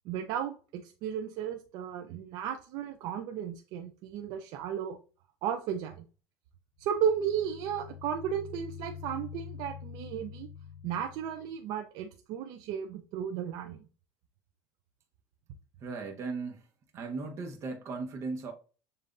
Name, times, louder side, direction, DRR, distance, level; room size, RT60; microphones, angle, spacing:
voice 1, 0.1-5.0 5.4-6.0 6.8-10.5 10.8-13.9, right 8 dB, 65° right, 0.6 m, -34 dB
sound 1, 6.8-11.6, left 8 dB, 80° left, 0.5 m, -46 dB
voice 2, 15.8-16.7 16.9-18.5, right 4 dB, 40° right, 1.0 m, -37 dB
7.0 x 2.6 x 2.5 m
supercardioid pair, 120°, 7 cm